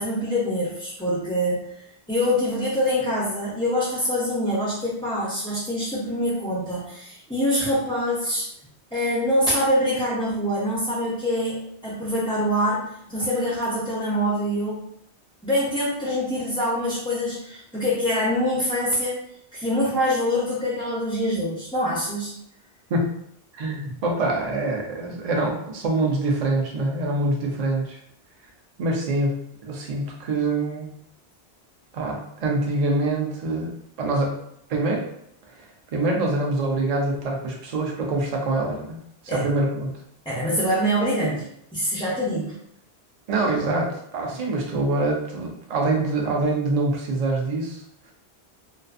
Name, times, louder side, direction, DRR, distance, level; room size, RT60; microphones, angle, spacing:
voice 1, 0.0-1.7 2.1-8.5 8.9-14.8 15.4-19.2 19.5-22.3 39.3-39.5 40.3-41.5 41.7-42.5, equal, 10° left, -8 dB, 0.3 m, -25 dB
voice 2, 23.5-28.0 28.8-30.9 31.9-33.7 34.0-34.4 34.7-35.1 35.6-35.7 35.9-39.9 43.3-47.8, right 2 dB, 50° right, 0 dB, 0.5 m, -25 dB
2.4 x 2.4 x 2.4 m, 0.71 s
omnidirectional pair, 1.1 m